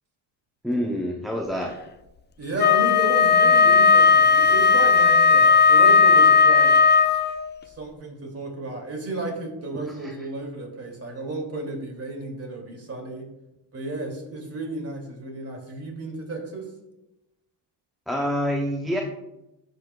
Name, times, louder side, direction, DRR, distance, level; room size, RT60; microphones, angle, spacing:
voice 1, 0.6-1.7 9.7-10.1 18.1-19.0, equal, ahead, 0 dB, 0.8 m, -27 dB
voice 2, 2.4-6.7 7.7-13.3 13.7-16.7, right 3 dB, 30° right, 1 dB, 2.7 m, -32 dB
Wind instrument woodwind instrument, 2.6-7.5, left 5 dB, 25° left, 0.4 m, -16 dB
12.5 x 5.3 x 2.3 m, 0.92 s
supercardioid pair, 75°, 47 cm